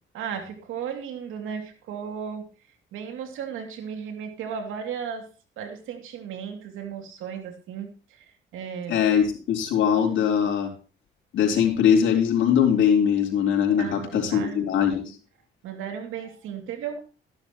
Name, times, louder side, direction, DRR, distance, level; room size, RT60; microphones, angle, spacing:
voice 1, 0.1-2.5 2.9-5.3 5.6-8.2 8.5-9.0 13.8-14.7 15.6-17.0, right 7 dB, 85° right, 4 dB, 2.7 m, -35 dB
voice 2, 8.9-10.7 11.3-15.1, left 8 dB, 75° left, 1 dB, 4.0 m, -21 dB
13.5 x 11.5 x 3.0 m, 0.36 s
cardioid pair, 90°, 20 cm